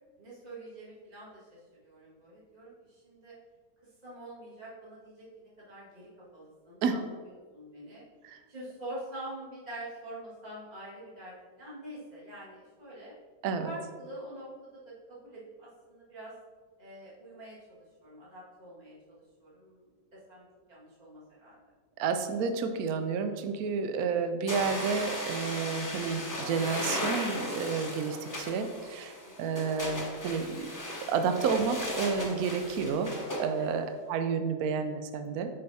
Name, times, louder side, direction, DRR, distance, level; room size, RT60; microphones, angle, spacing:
voice 1, 0.2-3.3 4.0-8.0 8.5-13.1 13.6-16.3 16.8-19.8 20.1-21.6 29.2-29.7 33.6-33.8, right 1 dB, 25° right, -8 dB, 1.9 m, -46 dB
voice 2, 22.0-30.7 31.1-33.1 33.4-35.5, right 5 dB, 70° right, 8 dB, 0.9 m, -30 dB
sound 1, 24.5-33.4, left 1 dB, 20° left, 0.6 m, -36 dB
7.5 x 5.4 x 2.8 m, 1.5 s
omnidirectional pair, 1.9 m